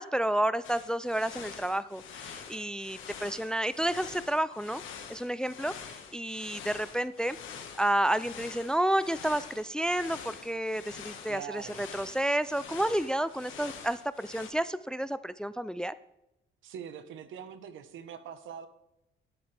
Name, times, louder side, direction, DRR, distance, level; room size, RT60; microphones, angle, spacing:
voice 1, 0.0-4.8 5.1-7.4 7.8-15.9, right 1 dB, 5° left, 16 dB, 0.3 m, -30 dB
sound 1, 0.6-14.5, left 7 dB, 80° left, 1.6 m, -46 dB
voice 2, 11.3-11.8 16.6-18.7, right 8 dB, 80° right, 11 dB, 1.1 m, -43 dB
11.5 x 11.5 x 3.4 m, 0.86 s
cardioid pair, 90°, 20 cm